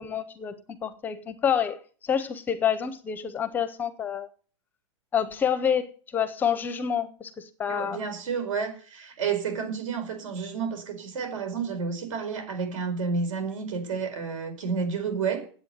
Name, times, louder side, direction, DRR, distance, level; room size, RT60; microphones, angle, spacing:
voice 1, 0.0-4.3 5.1-8.0, left 8 dB, 10° left, 0.5 m, -28 dB
voice 2, 7.7-15.4, right 5 dB, 85° right, 4.7 m, -30 dB
9.2 x 8.2 x 9.1 m
supercardioid pair, 175°, 16 cm